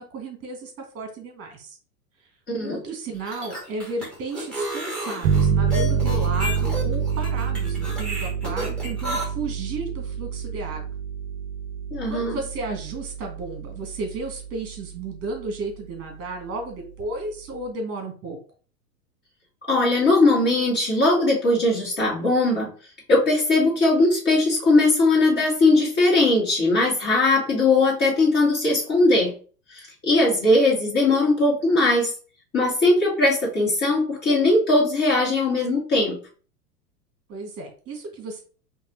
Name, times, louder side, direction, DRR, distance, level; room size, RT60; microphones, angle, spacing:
voice 1, 0.0-1.8 2.6-10.8 12.1-18.4 37.3-38.4, right 3 dB, 30° right, 3 dB, 1.6 m, -33 dB
voice 2, 2.5-2.8 11.9-12.4 19.7-22.7 23.1-29.3 29.7-32.1 32.5-36.2, left 2 dB, 20° left, -5 dB, 2.1 m, -20 dB
sound 1, 3.1-9.2, equal, ahead, 1.5 m, -32 dB
sound 2, 5.2-14.5, right 6 dB, 45° right, 0.6 m, -27 dB
5.2 x 2.8 x 2.6 m, 0.40 s
hypercardioid pair, 100°, 49 cm